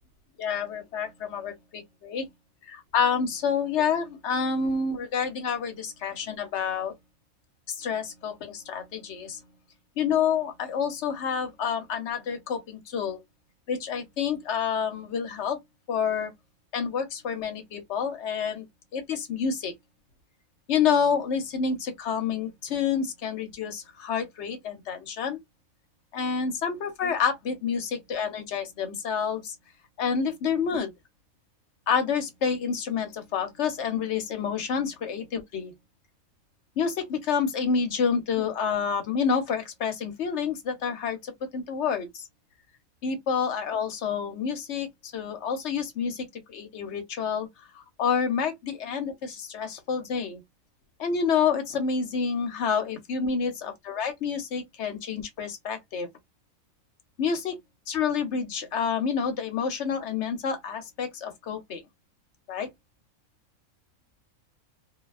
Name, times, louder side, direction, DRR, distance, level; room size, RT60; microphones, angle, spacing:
voice 1, 0.4-2.3 2.7-6.9 7.7-9.4 10.0-13.2 13.7-15.6 15.9-16.3 16.7-18.6 18.9-19.7 20.7-25.4 26.1-29.5 30.0-30.9 31.9-35.7 36.8-42.2 43.0-47.5 47.7-50.4 51.0-56.1 57.2-57.6 57.9-61.8 62.5-62.7, left 6 dB, 55° left, 1.0 m, -28 dB
2.7 x 2.2 x 2.3 m
omnidirectional pair, 1.5 m